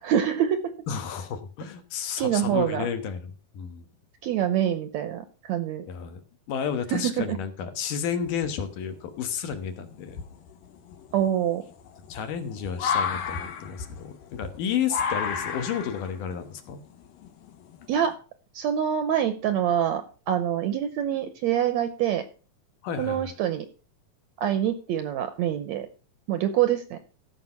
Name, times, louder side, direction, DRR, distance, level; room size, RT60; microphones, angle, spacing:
voice 1, 0.0-0.6 2.2-2.9 4.2-5.8 6.9-7.4 11.1-11.6 17.9-18.1 18.5-22.2 23.0-23.7 24.4-25.9 26.3-27.0, right 10 dB, 75° right, 11 dB, 1.7 m, -25 dB
voice 2, 0.9-3.8 5.9-10.2 12.1-16.8 22.8-23.3, left 7 dB, 75° left, 8 dB, 2.7 m, -32 dB
sound 1, 8.2-8.8 9.5-9.6 10.1-18.1, left 6 dB, 90° left, 2.9 m, -33 dB
14.0 x 5.8 x 5.6 m, 0.36 s
omnidirectional pair, 3.9 m